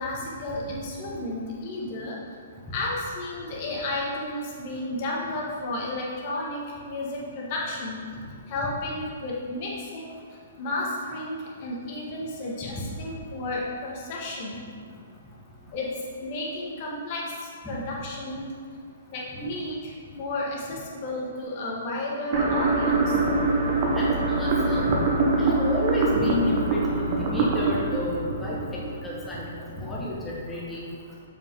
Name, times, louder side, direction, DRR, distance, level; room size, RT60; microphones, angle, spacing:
voice 1, 0.0-2.2 2.7-8.0 8.5-14.6 15.7-15.9 16.2-18.5 19.1-23.2, left 2 dB, 40° left, -4 dB, 1.8 m, -32 dB
sound 1, 22.3-29.4, right 3 dB, 40° right, 1.0 m, -24 dB
voice 2, 23.9-25.0 25.4-28.6 29.0-29.5 29.8-30.9, left 1 dB, 10° left, -6 dB, 1.5 m, -30 dB
6.8 x 5.5 x 3.8 m, 2.1 s
hypercardioid pair, 150°, 0 cm